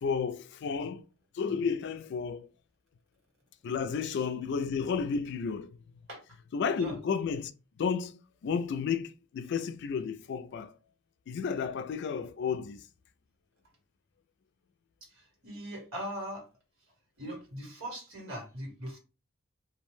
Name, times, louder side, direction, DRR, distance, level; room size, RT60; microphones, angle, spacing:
voice 1, 0.0-1.0 1.4-2.5 3.6-5.7 6.5-7.5 7.8-8.1 8.4-10.7 11.3-12.8, left 6 dB, 55° left, 0.3 m, -32 dB
voice 2, 15.0-16.5 17.2-19.0, equal, 80° right, 1.5 m, -40 dB
2.6 x 2.1 x 3.0 m
head